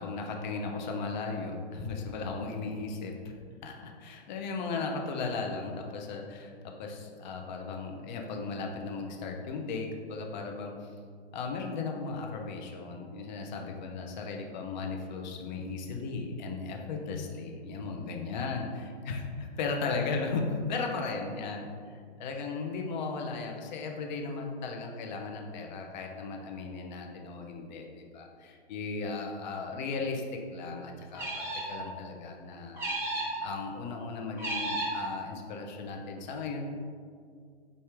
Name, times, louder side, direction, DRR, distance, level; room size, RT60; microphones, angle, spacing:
voice 1, 0.0-3.4 3.6-10.9 11.3-21.6 21.9-30.2 30.5-32.8 33.4-36.7, left 4 dB, 45° left, 2 dB, 0.7 m, -36 dB
sound 1, 31.1-31.8 32.8-33.4 34.4-35.0, right 1 dB, 10° right, 0.6 m, -33 dB
4.7 x 2.7 x 3.3 m, 2.1 s
hypercardioid pair, 135°, 32 cm